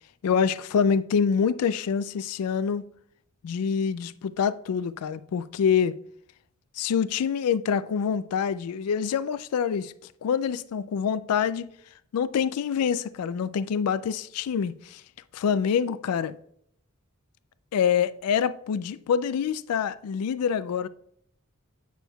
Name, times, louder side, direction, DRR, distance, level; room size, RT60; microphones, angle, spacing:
voice 1, 0.2-2.8 3.4-6.0 6.8-9.9 10.2-11.7 12.1-15.0 15.3-16.3 17.7-20.9, left 7 dB, 80° left, 0.3 m, -26 dB
8.2 x 6.2 x 2.3 m
head